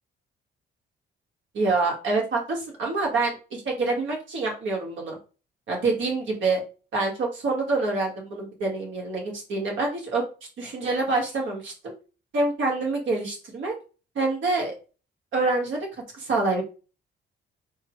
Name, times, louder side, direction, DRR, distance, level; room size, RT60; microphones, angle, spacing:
voice 1, 1.5-5.2 5.7-6.6 6.9-10.2 10.6-11.9 12.3-13.7 14.2-14.7 15.3-15.8 16.1-16.6, right 3 dB, 75° right, -1 dB, 2.0 m, -26 dB
4.4 x 2.4 x 4.6 m, 0.35 s
cardioid pair, 90°, 20 cm